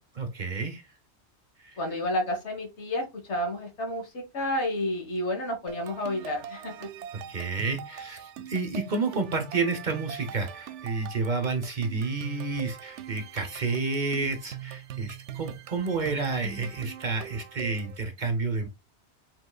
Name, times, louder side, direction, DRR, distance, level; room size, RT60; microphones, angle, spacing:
voice 1, 0.1-0.8 1.6-1.8 7.3-18.7, right 4 dB, 45° right, 0.8 m, -30 dB
voice 2, 1.8-6.9, left 1 dB, 70° left, 1.7 m, -30 dB
sound 1, 5.7-18.0, right 10 dB, 80° right, 0.9 m, -42 dB
5.2 x 3.7 x 2.3 m
omnidirectional pair, 1.2 m